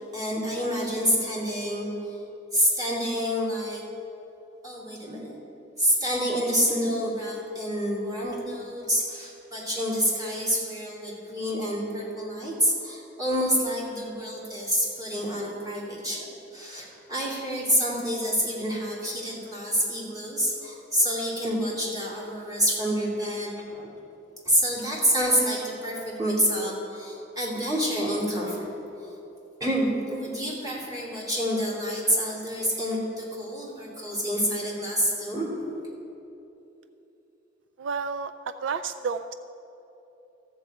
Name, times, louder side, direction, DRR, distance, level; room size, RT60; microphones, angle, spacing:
voice 1, 0.1-2.2 2.5-3.8 4.6-5.3 5.8-23.9 24.4-28.6 29.6-35.7, equal, 20° right, -6 dB, 2.7 m, -27 dB
voice 2, 37.8-38.3 38.6-39.3, right 5 dB, 70° right, 10 dB, 0.3 m, -30 dB
14.0 x 4.7 x 7.7 m, 3.0 s
head